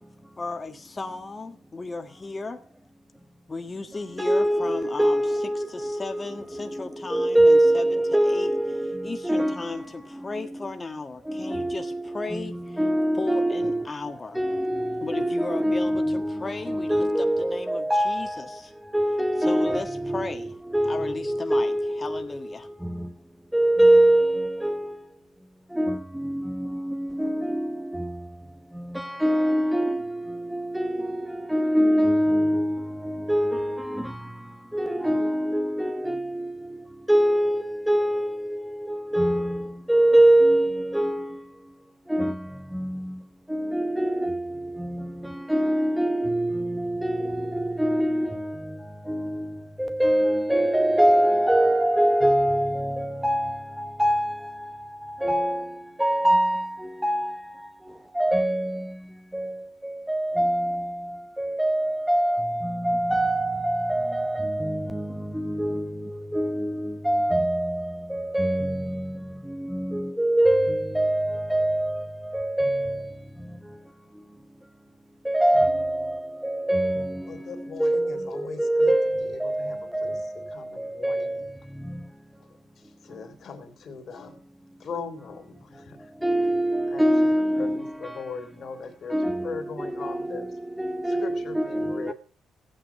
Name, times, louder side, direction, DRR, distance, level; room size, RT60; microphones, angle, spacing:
voice 1, 0.4-2.6 3.5-5.2 5.7-8.5 9.0-12.8 13.2-14.4 15.0-18.7 19.4-20.5 20.9-22.7, left 3 dB, 25° left, 1.5 m, -35 dB
voice 2, 4.2-9.8 10.3-10.7 11.3-13.9 14.3-18.6 18.9-22.5 22.8-23.1 23.5-25.0 25.7-28.2 28.8-34.3 34.7-36.8 37.1-41.4 42.1-43.2 43.5-57.7 58.1-59.0 59.3-69.2 69.5-73.1 75.2-81.5 81.9-82.0 86.2-88.2 89.1-90.5 90.8-92.1, right 1 dB, 5° right, 0.9 m, -24 dB
voice 3, 77.3-80.2 80.5-81.5 82.8-84.4 84.8-86.1 86.9-89.2 89.4-90.5 91.1-92.1, left 5 dB, 55° left, 3.1 m, -39 dB
14.5 x 9.3 x 5.8 m
supercardioid pair, 75°, 0 cm